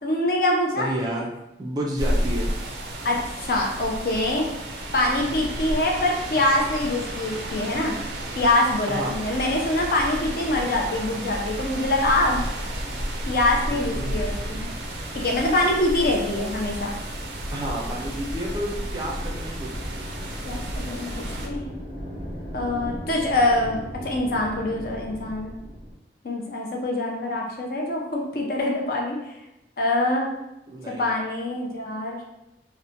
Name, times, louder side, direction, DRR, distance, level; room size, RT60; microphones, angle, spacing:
voice 1, 0.0-0.9 3.0-4.5 4.9-7.9 8.4-12.4 13.3-14.6 15.1-17.0 20.4-21.6 22.5-23.8 24.0-25.6 26.2-29.2 29.8-30.3 31.0-32.2, left 1 dB, 55° left, 0 dB, 0.5 m, -24 dB
voice 2, 0.8-1.3 1.6-2.5 8.9-9.2 13.7-14.7 17.5-19.9 30.7-31.1, right 1 dB, 20° right, -2 dB, 0.4 m, -31 dB
sound 1, 2.0-21.5, right 1 dB, 90° right, 0.4 m, -32 dB
sound 2, 9.0-25.9, equal, 15° left, 0.8 m, -37 dB
2.7 x 2.1 x 2.7 m, 0.89 s
head